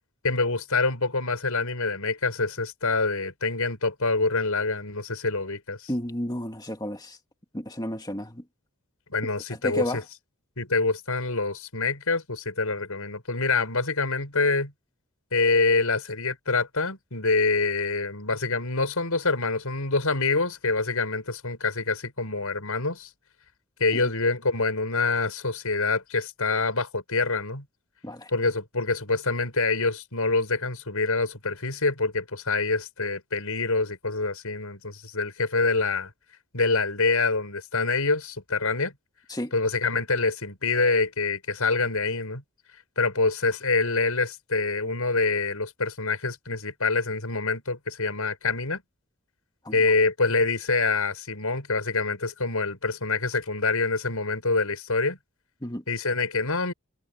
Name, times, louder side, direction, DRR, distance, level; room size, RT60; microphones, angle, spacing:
voice 1, 0.2-5.9 9.1-10.0 10.6-14.7 15.3-23.1 23.8-27.6 28.3-36.1 36.5-38.9 39.5-42.4 43.0-48.8 49.7-55.2 55.9-56.7, left 3 dB, 75° left, 5.9 m, -26 dB
voice 2, 5.9-7.2 7.5-8.4 9.5-10.0 24.0-24.1 28.0-28.3 39.3-39.5 49.6-49.8 55.6-55.8, left 1 dB, 20° left, 2.1 m, -32 dB
head